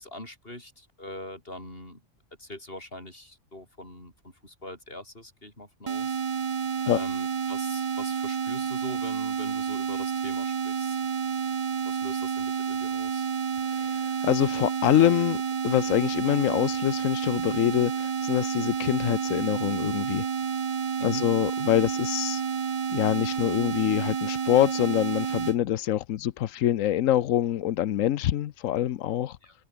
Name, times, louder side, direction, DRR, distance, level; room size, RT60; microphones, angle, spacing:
voice 1, 0.0-2.0 2.4-4.1 4.4-6.2 6.9-11.0 11.9-13.3 21.0-21.3 29.4-29.5, left 1 dB, 45° left, 7.0 m, -42 dB
sound 1, 5.9-25.6, right 7 dB, 50° right, 0.3 m, -30 dB
voice 2, 13.7-20.3 21.0-22.4 22.9-29.4, left 12 dB, 85° left, 1.1 m, -25 dB
omnidirectional pair, 1.3 m